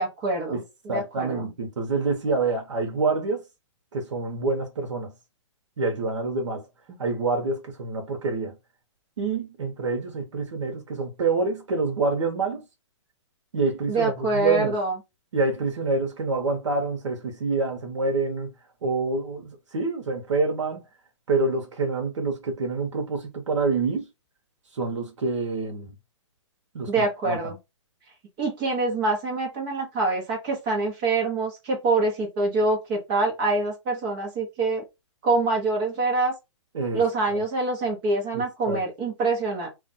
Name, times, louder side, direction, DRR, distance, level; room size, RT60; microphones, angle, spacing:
voice 1, 0.0-1.4 13.9-14.9 26.9-27.6 28.4-34.8 35.2-36.3 36.9-39.7, right 3 dB, 15° right, 0.9 m, -25 dB
voice 2, 0.9-3.4 3.9-5.1 5.8-6.7 7.0-8.6 9.2-12.6 13.5-14.8 15.3-18.5 18.8-20.9 21.3-24.1 24.7-25.9 26.7-26.9 27.2-27.5 36.7-37.4 38.3-38.8, right 3 dB, 70° right, 0.9 m, -27 dB
2.5 x 2.3 x 4.0 m
hypercardioid pair, 175°, 16 cm